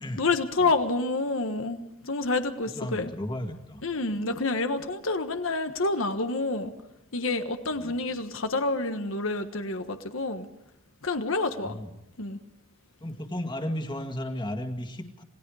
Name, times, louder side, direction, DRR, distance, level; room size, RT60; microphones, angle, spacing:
voice 1, 0.2-3.1 3.8-6.7 7.1-10.5 11.0-11.8 12.2-12.4, left 3 dB, 85° left, 7 dB, 1.4 m, -28 dB
voice 2, 2.7-3.8 4.1-4.2 7.7-8.0 11.6-11.9 13.0-15.2, left 1 dB, 25° left, 5 dB, 2.0 m, -34 dB
27.5 x 19.0 x 4.9 m, 0.82 s
head